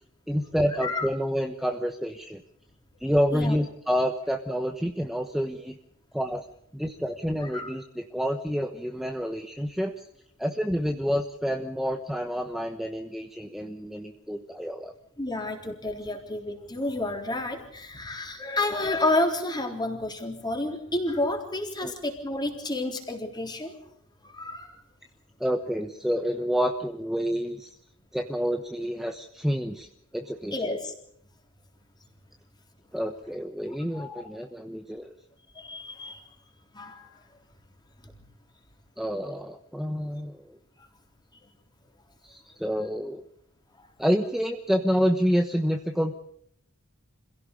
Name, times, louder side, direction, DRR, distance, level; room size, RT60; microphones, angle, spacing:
voice 1, 0.3-2.4 3.0-5.8 6.1-6.4 6.7-9.9 10.4-14.9 21.8-21.9 25.4-27.7 28.1-29.9 30.1-30.7 32.9-35.1 39.0-40.6 42.2-43.2 44.0-46.1, equal, ahead, 6 dB, 1.1 m, -28 dB
voice 2, 7.4-7.7 15.2-23.7 24.2-24.8 30.5-30.9 33.9-34.2 35.6-36.2 36.7-37.1 43.8-43.9, left 2 dB, 20° left, 3 dB, 3.8 m, -30 dB
26.5 x 16.5 x 6.8 m, 0.69 s
head